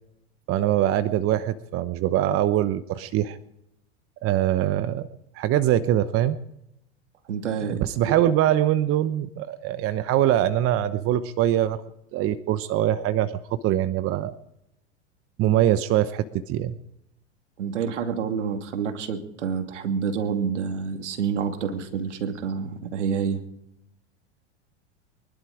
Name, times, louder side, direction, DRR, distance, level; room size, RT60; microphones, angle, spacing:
voice 1, 0.5-3.4 4.2-5.1 5.3-6.4 7.7-11.8 12.1-13.3 13.6-14.4 15.4-16.7, right 12 dB, 40° right, 13 dB, 1.0 m, -23 dB
voice 2, 7.3-8.1 17.6-23.4, right 6 dB, 85° right, 7 dB, 2.6 m, -28 dB
24.5 x 12.0 x 4.9 m, 0.82 s
hypercardioid pair, 110°, 35 cm